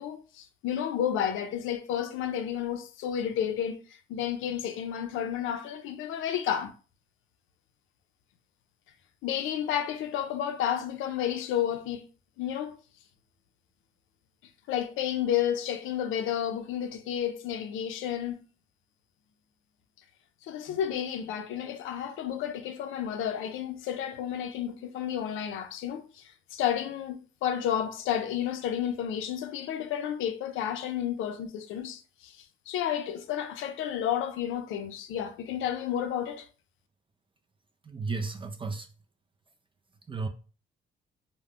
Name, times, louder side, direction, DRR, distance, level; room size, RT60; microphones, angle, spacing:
voice 1, 0.0-6.7 9.2-12.1 12.4-12.8 14.7-18.4 20.4-36.5, left 9 dB, 85° left, 0.4 m, -31 dB
voice 2, 37.8-38.9 40.1-40.3, right 4 dB, 25° right, 0.3 m, -33 dB
2.3 x 2.1 x 3.4 m
cardioid pair, 90°, 20 cm